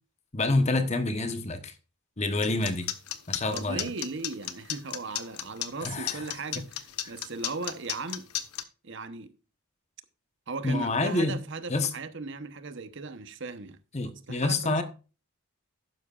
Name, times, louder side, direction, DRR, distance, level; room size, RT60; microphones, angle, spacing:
voice 1, 0.3-1.7 2.2-2.9 3.3-3.9 5.8-6.2 6.6-6.7 10.6-11.4 11.7-11.9 13.9-14.8, left 2 dB, 30° left, 1.0 m, -27 dB
Old Clockwork, 2.4-8.6, left 11 dB, 85° left, 1.1 m, -33 dB
voice 2, 3.5-8.3 8.8-9.3 10.5-13.8 14.3-14.8, right 3 dB, 55° right, 1.0 m, -37 dB
12.0 x 9.8 x 2.5 m
head